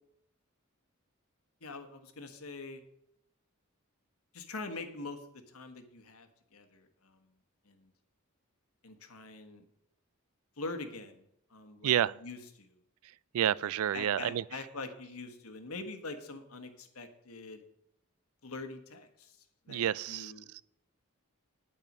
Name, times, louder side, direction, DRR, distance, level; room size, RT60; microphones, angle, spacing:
voice 1, 1.6-2.8 4.3-7.2 7.7-7.9 8.8-9.6 10.6-11.2 11.5-11.9 12.2-12.8 13.9-17.6 18.4-19.4 19.7-20.5, left 3 dB, 85° left, 1.3 m, -44 dB
voice 2, 11.8-12.2 13.3-14.4 19.7-20.6, right 10 dB, 80° right, 0.3 m, -30 dB
8.9 x 8.6 x 5.4 m
head